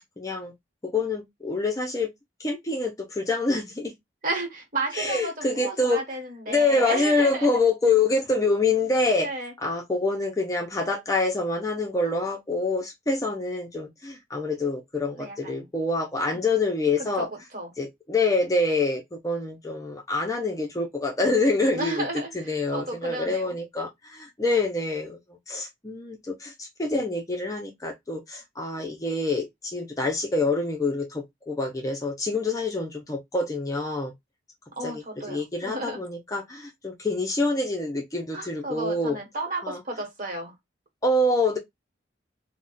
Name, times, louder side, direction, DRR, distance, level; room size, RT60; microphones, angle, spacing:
voice 1, 0.2-0.5 0.8-2.1 2.4-3.9 4.9-6.0 6.5-9.3 9.6-17.3 17.8-22.1 22.3-25.2 25.5-34.1 34.8-39.2 39.6-39.8 41.0-41.6, left 2 dB, 20° left, 0.5 m, -26 dB
voice 2, 4.2-7.6 9.2-9.5 15.2-15.7 17.2-17.7 21.7-23.6 34.8-36.0 38.3-40.5, right 2 dB, 45° right, 1.1 m, -33 dB
2.4 x 2.1 x 3.8 m
head